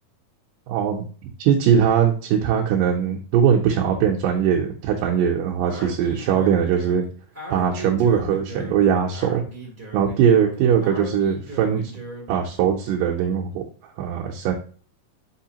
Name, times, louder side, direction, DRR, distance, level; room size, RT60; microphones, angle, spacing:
voice 1, 0.7-1.0 1.4-7.0 7.5-9.4 9.9-11.8 12.3-13.6 14.0-14.5, right 8 dB, 75° right, 0 dB, 2.3 m, -20 dB
Speech, 5.6-12.4, right 1 dB, 5° right, 1.8 m, -38 dB
6.4 x 5.3 x 2.8 m, 0.40 s
omnidirectional pair, 4.2 m